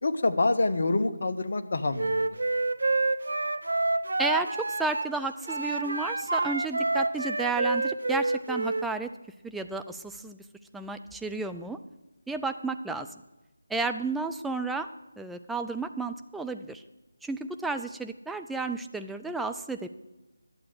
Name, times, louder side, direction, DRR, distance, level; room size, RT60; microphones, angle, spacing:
voice 1, 0.0-2.4, left 2 dB, 55° left, 9 dB, 0.9 m, -26 dB
Wind instrument woodwind instrument, 1.9-5.1 5.5-8.9, right 2 dB, 65° right, 0.5 m, -28 dB
voice 2, 4.2-9.1 9.4-10.4 10.7-11.8 12.3-13.1 13.7-14.9 15.2-16.8 17.2-19.9, right 3 dB, 5° right, 6 dB, 0.4 m, -32 dB
11.5 x 7.5 x 7.3 m, 1.0 s
figure-of-eight pair, 155°, 0 cm